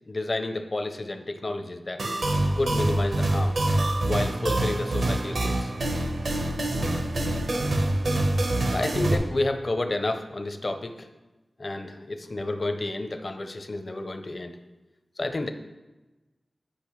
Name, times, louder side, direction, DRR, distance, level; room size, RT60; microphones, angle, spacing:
voice 1, 0.1-2.0 2.6-3.6 4.0-5.7 8.7-11.1 11.6-14.6 15.2-15.5, left 2 dB, 45° left, 6 dB, 0.6 m, -30 dB
sound 1, 2.0-9.2, right 1 dB, 80° right, 0.9 m, -25 dB
10.0 x 5.2 x 3.1 m, 1.1 s
wide cardioid pair, 65°, 0 cm